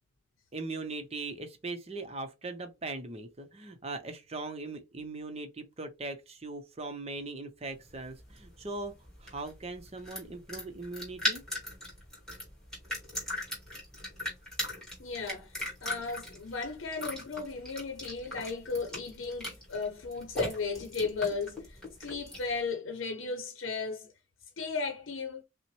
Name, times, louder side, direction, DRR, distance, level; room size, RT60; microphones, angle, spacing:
voice 1, 0.5-8.9 9.2-11.4, right 3 dB, 30° right, 0.7 m, -40 dB
sound 1, 7.8-22.6, left 1 dB, 5° left, 2.1 m, -39 dB
voice 2, 15.0-24.1 24.6-25.4, left 4 dB, 80° left, 0.7 m, -35 dB
5.5 x 2.1 x 3.1 m
head